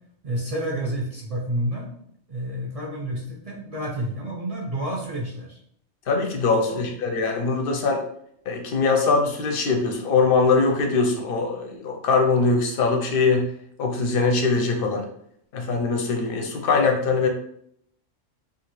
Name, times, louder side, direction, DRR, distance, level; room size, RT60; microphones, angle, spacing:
voice 1, 0.2-1.9 2.3-5.6 6.7-6.8, right 1 dB, 55° right, -3 dB, 0.4 m, -29 dB
voice 2, 6.1-8.0 8.5-13.5 13.8-15.0 15.5-17.3, left 4 dB, 60° left, 3 dB, 0.6 m, -22 dB
2.7 x 2.4 x 2.9 m, 0.69 s
omnidirectional pair, 1.3 m